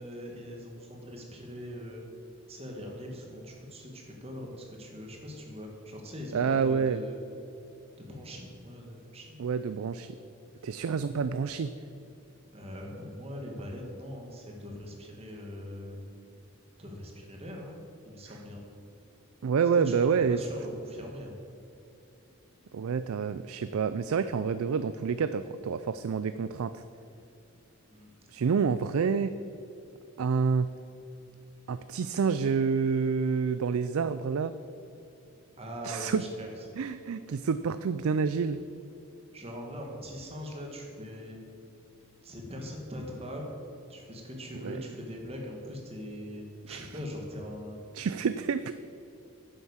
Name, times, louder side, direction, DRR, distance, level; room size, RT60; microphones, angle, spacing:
voice 1, 0.0-2.0 2.5-7.2 8.0-9.4 12.5-16.1 16.8-17.8 18.0-18.7 19.9-21.4 27.9-28.1 35.6-36.5 39.3-41.4 42.2-43.4 43.9-47.8, equal, 30° right, 0 dB, 1.9 m, -41 dB
voice 2, 6.3-7.0 9.4-10.1 10.6-11.7 18.3-18.4 19.4-20.4 22.7-26.8 28.3-29.3 30.2-30.7 31.7-34.5 35.8-36.2 36.8-38.6 44.6-44.8 46.7-46.9 47.9-48.7, right 6 dB, 80° right, 12 dB, 0.4 m, -28 dB
9.9 x 8.2 x 7.3 m, 2.8 s
head